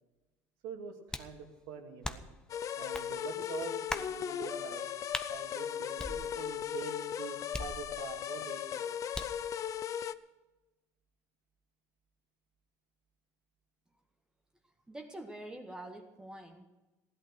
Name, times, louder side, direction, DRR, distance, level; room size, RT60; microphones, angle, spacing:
voice 1, 0.6-2.3 2.8-4.9 5.3-8.8, right 6 dB, 80° right, 4 dB, 2.4 m, -45 dB
sound 1, 1.1-1.4 2.0-2.4 2.9-3.1 3.9-4.2 5.1-5.3 6.0-6.6 7.5-8.2 9.1-9.5, left 2 dB, 10° left, 0.9 m, -40 dB
sound 2, 2.5-10.1, left 9 dB, 45° left, 0.6 m, -37 dB
voice 2, 14.6-16.7, right 1 dB, 10° right, 3 dB, 1.6 m, -46 dB
16.0 x 11.5 x 6.2 m, 1.1 s
cardioid pair, 115°, 8 cm